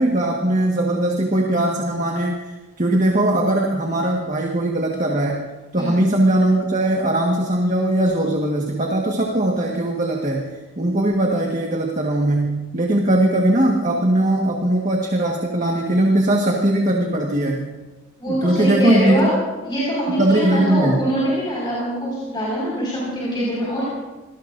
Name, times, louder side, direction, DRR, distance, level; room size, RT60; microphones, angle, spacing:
voice 1, 0.0-2.5 2.8-17.7 18.3-19.3 20.2-21.1, right 1 dB, 35° right, 0 dB, 1.6 m, -20 dB
voice 2, 18.2-19.3 19.6-23.8, equal, 20° left, -7 dB, 5.4 m, -23 dB
27.0 x 19.5 x 2.7 m, 1.2 s
head